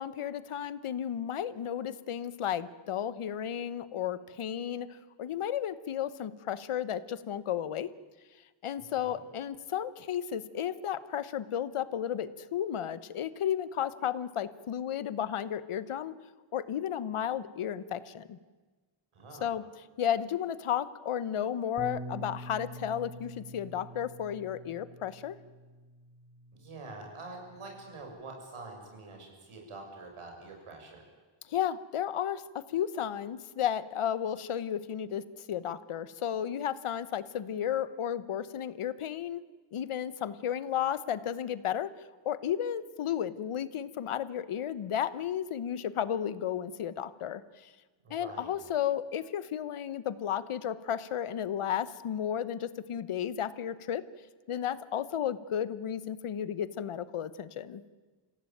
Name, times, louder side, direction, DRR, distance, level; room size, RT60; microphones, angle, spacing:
voice 1, 0.0-7.9 8.6-16.1 16.5-18.4 19.4-19.6 20.0-25.4 31.5-39.4 39.7-41.9 42.2-47.7 48.1-54.0 54.5-57.8, left 9 dB, 85° left, 15 dB, 1.1 m, -33 dB
voice 2, 19.1-19.5 26.5-31.0 48.0-48.5, right 3 dB, 85° right, 2 dB, 6.6 m, -46 dB
Bass guitar, 21.8-28.0, right 1 dB, 35° right, 1.9 m, -46 dB
26.5 x 16.5 x 9.1 m, 1.3 s
wide cardioid pair, 90°, 49 cm